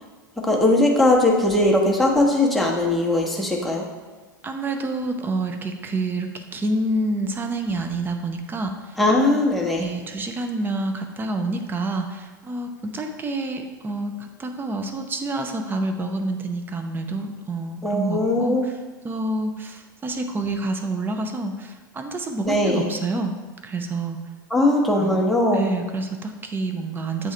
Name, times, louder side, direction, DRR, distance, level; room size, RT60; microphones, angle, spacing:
voice 1, 0.4-3.9 9.0-9.9 17.8-18.7 22.4-22.9 24.5-25.7, left 1 dB, ahead, -2 dB, 1.0 m, -20 dB
voice 2, 4.4-8.7 9.8-18.7 19.0-23.3 23.6-24.2 25.0-25.2 25.5-27.3, right 2 dB, 20° right, 6 dB, 0.6 m, -28 dB
8.1 x 3.6 x 3.2 m, 1.4 s
figure-of-eight pair, 85°, 11 cm